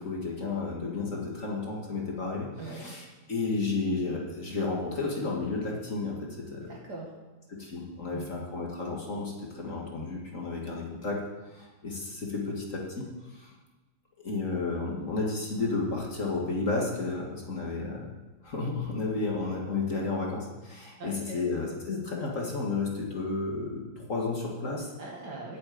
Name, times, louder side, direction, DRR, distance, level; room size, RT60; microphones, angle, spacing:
voice 1, 0.0-6.7 7.5-11.2 11.5-13.5 14.2-18.1 18.4-24.9, left 3 dB, 40° left, -2 dB, 2.0 m, -32 dB
voice 2, 2.6-2.9 6.6-7.2 8.1-8.3 21.0-21.4 25.0-25.6, right 3 dB, 55° right, -2 dB, 2.7 m, -41 dB
8.5 x 7.8 x 8.6 m, 1.2 s
omnidirectional pair, 2.1 m